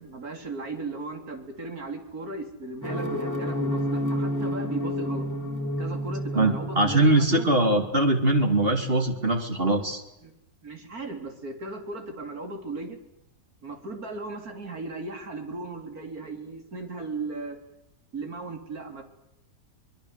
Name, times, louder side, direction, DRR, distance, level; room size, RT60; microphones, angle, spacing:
voice 1, 0.0-5.3 5.8-7.5 10.2-10.3 10.6-13.0 13.6-17.6 18.1-19.0, right 3 dB, 85° right, 5 dB, 4.0 m, -37 dB
sound 1, 2.8-7.9, equal, 10° right, 4.3 m, -30 dB
voice 2, 6.3-10.0, right 1 dB, 40° right, 4 dB, 2.9 m, -22 dB
24.5 x 22.0 x 8.1 m, 0.85 s
omnidirectional pair, 1.5 m